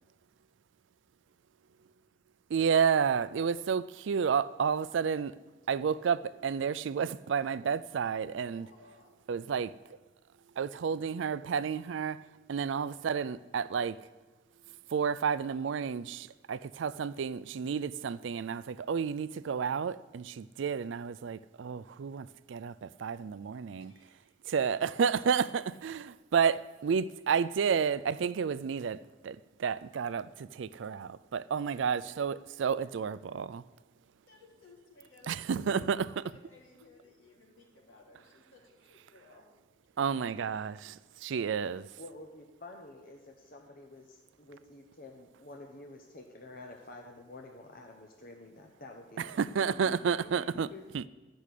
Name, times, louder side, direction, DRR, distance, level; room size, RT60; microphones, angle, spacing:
voice 1, 2.5-5.3 5.7-8.7 9.3-9.7 10.6-12.2 12.5-14.0 14.9-23.9 24.5-33.6 35.3-36.1 40.0-41.8 49.2-50.7 50.9-51.1, right 6 dB, 75° right, 0.4 m, -31 dB
voice 2, 8.5-9.1 23.8-24.8 31.7-31.8 34.3-35.8 36.3-39.5 41.5-41.6 49.3-49.4, left 3 dB, 80° left, 3.5 m, -59 dB
voice 3, 42.0-50.8, left 2 dB, 50° left, 0.9 m, -50 dB
12.0 x 6.2 x 8.3 m
head